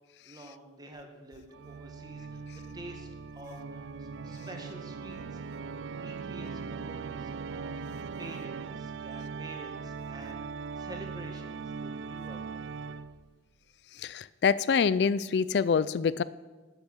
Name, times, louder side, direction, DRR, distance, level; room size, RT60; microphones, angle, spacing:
voice 1, 0.2-2.4 2.7-12.7, right 1 dB, 20° right, 3 dB, 1.8 m, -48 dB
Organ, 1.5-13.4, right 5 dB, 85° right, 0.4 m, -40 dB
voice 2, 14.0-16.2, left 6 dB, 65° left, 18 dB, 0.4 m, -26 dB
12.5 x 8.0 x 7.2 m, 1.2 s
head